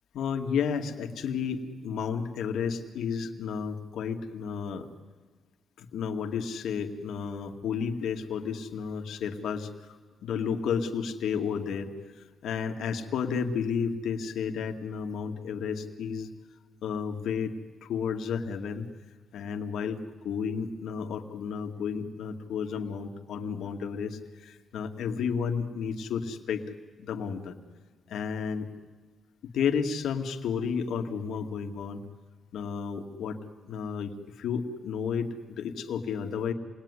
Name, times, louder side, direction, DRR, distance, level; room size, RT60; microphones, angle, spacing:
voice 1, 0.1-4.9 5.8-9.7 10.2-11.9 12.2-16.3 16.8-17.5 17.8-18.9 19.3-20.0 20.2-26.7 27.0-27.6 28.1-28.7 29.4-32.0 32.5-33.4 33.6-36.5, left 6 dB, 80° left, 4 dB, 2.2 m, -32 dB
28.0 x 20.5 x 9.8 m, 1.4 s
cardioid pair, 115°, 0 cm